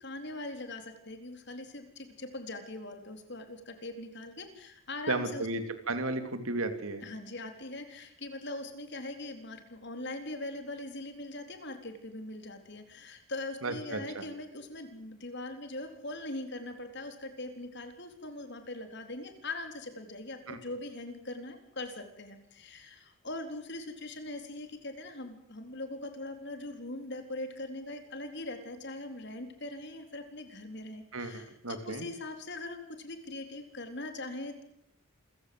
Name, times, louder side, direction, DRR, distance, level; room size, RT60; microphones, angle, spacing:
voice 1, 0.0-5.5 7.0-34.6, left 2 dB, 55° left, 7 dB, 4.0 m, -41 dB
voice 2, 5.1-5.6 5.9-7.0 13.6-14.2 20.5-20.6 31.1-32.0, right 2 dB, 80° right, 8 dB, 3.2 m, -34 dB
28.0 x 16.0 x 8.0 m, 0.78 s
head